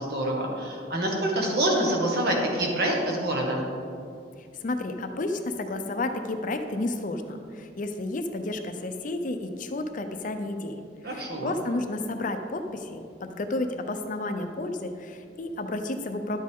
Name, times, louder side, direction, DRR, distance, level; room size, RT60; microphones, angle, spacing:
voice 1, 0.0-3.7 11.0-11.5, right 1 dB, 65° right, -1 dB, 1.6 m, -26 dB
voice 2, 4.4-16.4, left 2 dB, 50° left, 7 dB, 0.6 m, -32 dB
10.5 x 7.5 x 3.6 m, 2.3 s
head